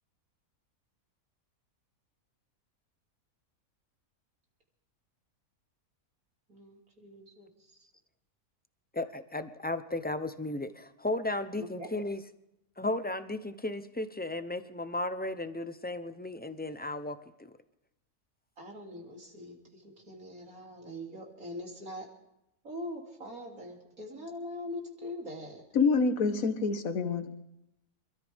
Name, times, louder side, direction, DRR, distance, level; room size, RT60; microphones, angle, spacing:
voice 1, 6.5-7.5 11.6-11.9 18.6-22.1 22.6-25.6, left 1 dB, 65° right, 3.6 m, -42 dB
voice 2, 8.9-12.2 12.8-17.5, left 2 dB, 15° left, 0.4 m, -35 dB
voice 3, 25.7-27.5, left 4 dB, 65° left, 1.7 m, -27 dB
27.5 x 13.5 x 3.6 m
omnidirectional pair, 1.6 m